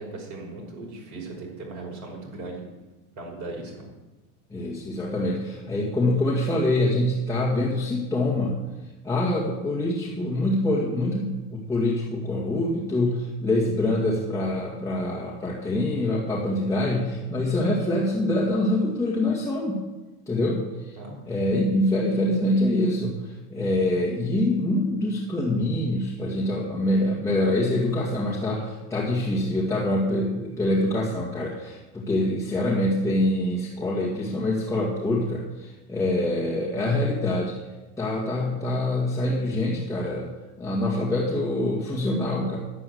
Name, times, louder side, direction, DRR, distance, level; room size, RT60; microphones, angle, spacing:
voice 1, 0.0-2.6 3.2-3.8 21.0-21.2, right 2 dB, 45° right, -1 dB, 5.6 m, -37 dB
voice 2, 4.5-8.6 9.0-19.8 20.3-21.0 21.3-37.6 38.0-40.3 40.6-42.6, left 1 dB, 5° left, -5 dB, 2.1 m, -25 dB
10.5 x 8.5 x 7.9 m, 1.1 s
supercardioid pair, 130°, 42 cm